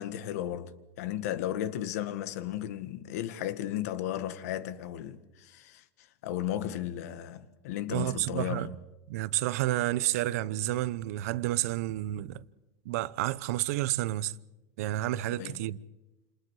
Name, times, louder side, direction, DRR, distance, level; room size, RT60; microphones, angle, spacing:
voice 1, 0.0-5.8 6.2-8.7 15.4-15.6, left 11 dB, 75° left, 1.8 m, -35 dB
voice 2, 7.9-8.8 9.1-12.4 12.8-14.3 14.8-15.8, right 15 dB, 70° right, 0.9 m, -30 dB
30.0 x 27.5 x 4.9 m
supercardioid pair, 140°, 8 cm